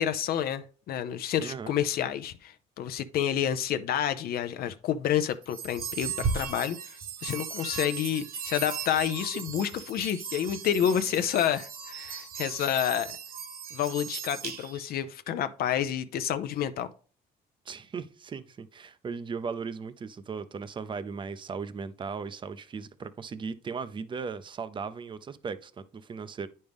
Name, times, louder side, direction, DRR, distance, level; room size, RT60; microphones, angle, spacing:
voice 1, 0.0-6.8 7.2-13.2 13.7-16.9, left 10 dB, 65° left, 0.6 m, -29 dB
voice 2, 1.4-1.8 17.7-26.5, right 5 dB, 30° right, 0.6 m, -37 dB
sound 1, 5.4-15.0, right 6 dB, 60° right, 1.3 m, -37 dB
9.3 x 5.4 x 3.5 m
cardioid pair, 110°, 17 cm